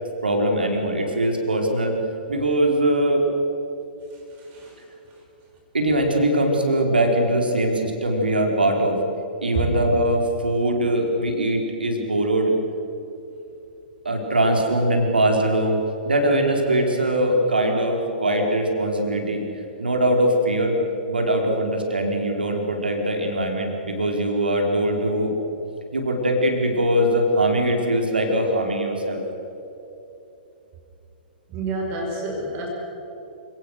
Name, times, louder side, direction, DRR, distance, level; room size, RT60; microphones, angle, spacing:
voice 1, 0.2-1.9 2.3-3.2 5.7-9.0 9.4-12.5 14.0-19.4 19.8-20.8 21.1-25.3 25.9-29.2, right 1 dB, 75° right, 2 dB, 4.8 m, -21 dB
voice 2, 4.4-4.8 9.5-9.7 31.5-32.7, right 3 dB, 30° right, 0 dB, 5.3 m, -29 dB
29.5 x 18.5 x 6.5 m, 3.0 s
figure-of-eight pair, 110°, 5 cm